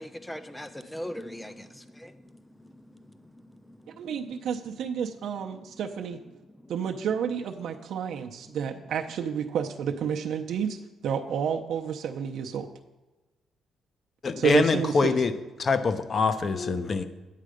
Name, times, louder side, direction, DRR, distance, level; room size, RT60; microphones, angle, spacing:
voice 1, 0.0-7.1 7.7-8.8, equal, 10° left, 0.7 m, -44 dB
voice 2, 4.0-6.2 6.7-10.8 11.0-12.7 14.4-15.2, right 7 dB, 70° right, 0.6 m, -30 dB
voice 3, 14.2-15.3 15.6-17.0, left 4 dB, 40° left, 0.8 m, -24 dB
9.4 x 7.5 x 5.0 m
cardioid pair, 100°, 0 cm